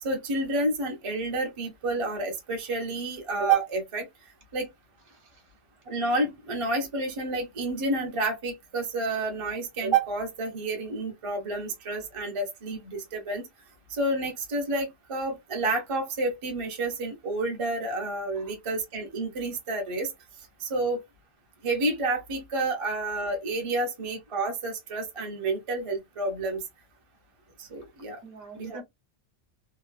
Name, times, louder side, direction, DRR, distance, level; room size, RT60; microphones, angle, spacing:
voice 1, 0.0-4.1 4.5-4.7 5.9-13.4 13.9-20.1 20.6-21.0 21.6-26.6 27.6-28.2 28.6-28.8, right 2 dB, 35° right, 0.7 m, -29 dB
voice 2, 28.2-28.8, right 3 dB, 55° right, 1.1 m, -45 dB
3.0 x 2.2 x 2.4 m
omnidirectional pair, 1.2 m